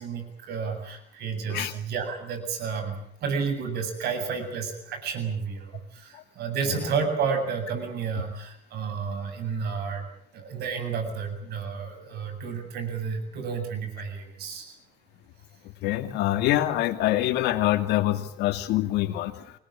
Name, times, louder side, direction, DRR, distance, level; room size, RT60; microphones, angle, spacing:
voice 1, 0.0-10.0 10.3-14.7, right 5 dB, 70° right, 8 dB, 7.9 m, -31 dB
voice 2, 15.8-19.5, left 14 dB, 90° left, 8 dB, 2.3 m, -25 dB
27.5 x 20.5 x 8.8 m, 0.67 s
cardioid pair, 110°, 17 cm